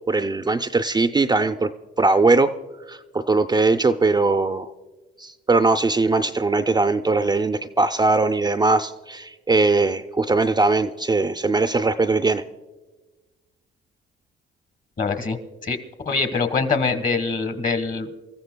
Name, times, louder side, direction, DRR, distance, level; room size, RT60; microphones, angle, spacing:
voice 1, 0.1-1.7 2.0-2.5 2.9-4.7 5.2-12.4, right 3 dB, 20° right, 8 dB, 0.4 m, -20 dB
voice 2, 15.0-15.4 15.6-15.8 16.0-18.1, left 4 dB, 45° left, 9 dB, 1.3 m, -23 dB
27.5 x 14.5 x 2.2 m, 1.3 s
cardioid pair, 90°, 20 cm